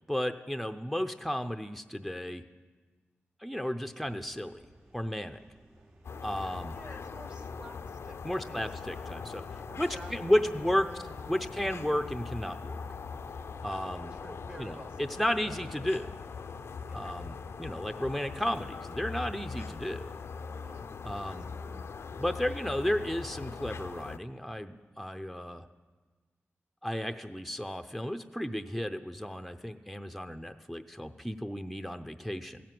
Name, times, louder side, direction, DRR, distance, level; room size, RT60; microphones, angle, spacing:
voice 1, 0.1-2.4 3.4-4.6 4.9-5.4 6.2-6.8 8.2-10.9 11.3-12.8 13.6-14.2 14.6-16.1 16.9-20.1 21.0-21.5 22.2-25.7 26.8-32.6, equal, ahead, 8 dB, 0.6 m, -33 dB
sound 1, 4.0-20.1, right 1 dB, 75° right, 2.6 m, -58 dB
sound 2, 6.0-24.2, left 5 dB, 75° left, 0.5 m, -41 dB
voice 2, 6.7-9.1 9.7-11.8 13.8-15.1 15.4-15.6 16.8-17.1 20.3-20.9 21.2-21.9, right 1 dB, 25° right, 10 dB, 1.0 m, -51 dB
16.0 x 9.3 x 7.7 m, 1.4 s
wide cardioid pair, 90°, 4 cm